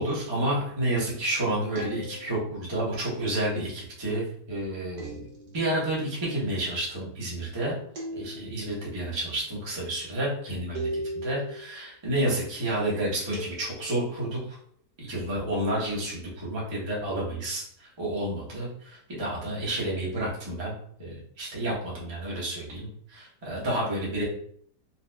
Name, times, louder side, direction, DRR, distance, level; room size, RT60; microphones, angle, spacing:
voice 1, 0.0-5.3 5.5-7.8 8.1-14.6 15.0-20.7 21.0-24.2, right 1 dB, 20° right, -5 dB, 0.8 m, -30 dB
sound 1, 1.8-2.6 5.0-5.8 7.9-8.8 10.8-11.6 13.3-14.2, right 1 dB, 70° right, 1.4 m, -38 dB
4.2 x 2.4 x 2.3 m, 0.64 s
omnidirectional pair, 1.8 m